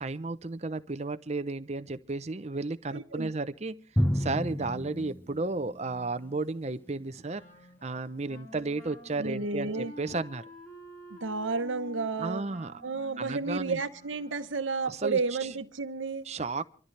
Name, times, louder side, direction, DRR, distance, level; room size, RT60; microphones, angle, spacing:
voice 1, 0.0-3.8 4.1-7.4 7.8-10.4 12.2-12.7 13.2-13.8 14.9-15.2 16.2-16.6, right 3 dB, 35° right, 0.7 m, -33 dB
voice 2, 2.9-3.3 9.2-9.9 11.1-12.4 12.8-16.2, right 4 dB, 75° right, 1.0 m, -32 dB
Drum, 4.0-6.3, equal, 10° left, 1.0 m, -31 dB
Wind instrument woodwind instrument, 7.3-14.7, left 1 dB, 40° left, 2.7 m, -49 dB
26.5 x 13.5 x 3.3 m
head